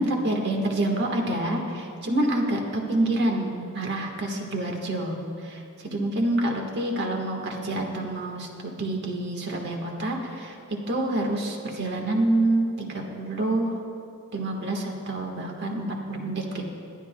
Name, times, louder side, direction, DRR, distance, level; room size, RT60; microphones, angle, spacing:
voice 1, 0.0-5.6 5.9-10.5 10.9-13.8 14.3-16.7, right 1 dB, 55° right, 2 dB, 1.4 m, -27 dB
21.5 x 11.0 x 2.2 m, 2.5 s
head